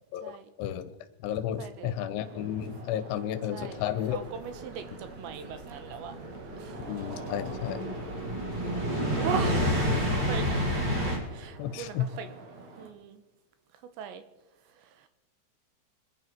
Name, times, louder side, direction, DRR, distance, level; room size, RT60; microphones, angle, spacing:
voice 1, 0.1-0.9 1.2-4.2 6.9-7.8 11.6-12.1, left 10 dB, 80° left, 12 dB, 3.2 m, -32 dB
voice 2, 1.6-2.0 3.5-6.2 6.6-6.8 9.2-9.7 10.3-10.5 11.3-12.4 12.8-13.2 14.0-14.2 14.7-15.1, right 7 dB, 75° right, 9 dB, 3.1 m, -39 dB
sound 1, 2.2-12.9, right 3 dB, 45° right, 2.5 m, -46 dB
sound 2, 4.1-11.2, equal, 25° right, 4.5 m, -30 dB
26.5 x 11.0 x 4.5 m, 1.1 s
omnidirectional pair, 5.6 m